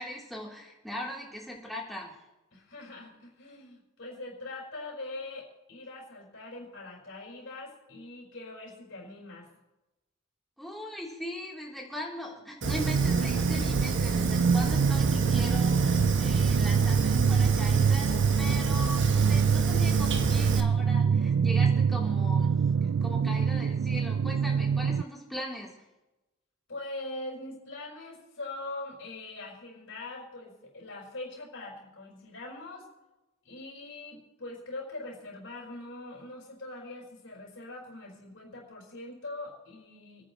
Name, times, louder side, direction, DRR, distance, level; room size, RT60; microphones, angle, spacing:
voice 1, 0.0-2.1 10.6-25.7, equal, ahead, -3 dB, 3.2 m, -39 dB
voice 2, 2.5-9.5 26.7-32.9 33.4-40.2, left 2 dB, 70° left, -2 dB, 5.0 m, -42 dB
Fire, 12.6-20.6, right 3 dB, 60° right, 1.1 m, -31 dB
sound 1, 12.7-25.0, right 6 dB, 80° right, 0.3 m, -25 dB
29.5 x 10.0 x 3.0 m, 1.0 s
head